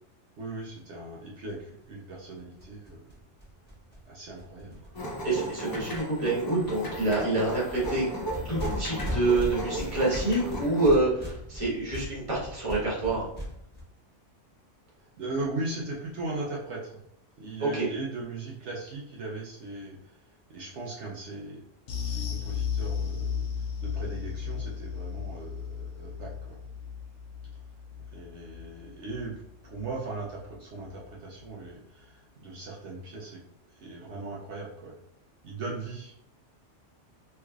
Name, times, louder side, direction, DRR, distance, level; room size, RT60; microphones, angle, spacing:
voice 1, 0.4-3.2 4.1-5.0 15.0-17.0 17.4-20.2 20.5-21.6 22.0-23.5 23.8-26.6 28.1-33.4 33.7-34.9 35.4-36.2, right 2 dB, 70° right, -4 dB, 1.0 m, -38 dB
sound 1, 1.5-1.6 1.8-1.9 2.1-2.2 2.4-5.6 5.9-6.3 6.6-13.8, equal, 10° left, 1.3 m, -38 dB
sound 2, 4.9-10.9, equal, 35° left, 0.3 m, -36 dB
voice 2, 5.2-8.1 8.4-13.3 17.6-17.9, right 2 dB, 30° right, -5 dB, 1.2 m, -27 dB
sound 3, 21.9-30.5 30.8-31.0 31.4-31.5, left 7 dB, 75° left, 1.0 m, -35 dB
3.4 x 3.2 x 2.3 m, 0.76 s
omnidirectional pair, 1.3 m